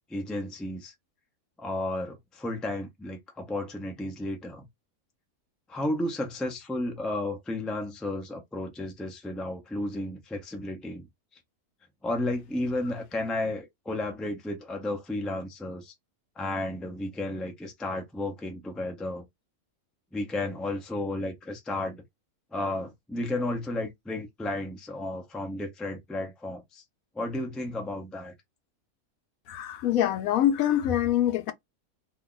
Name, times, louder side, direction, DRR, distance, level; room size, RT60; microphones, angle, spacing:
voice 1, 0.1-0.9 1.6-4.7 5.7-11.1 12.0-15.9 16.4-19.2 20.1-22.0 22.5-26.8 27.1-28.3, left 1 dB, ahead, 0.4 m, -33 dB
voice 2, 29.5-31.5, left 11 dB, 80° left, 1.0 m, -25 dB
2.7 x 2.4 x 3.7 m
omnidirectional pair, 1.5 m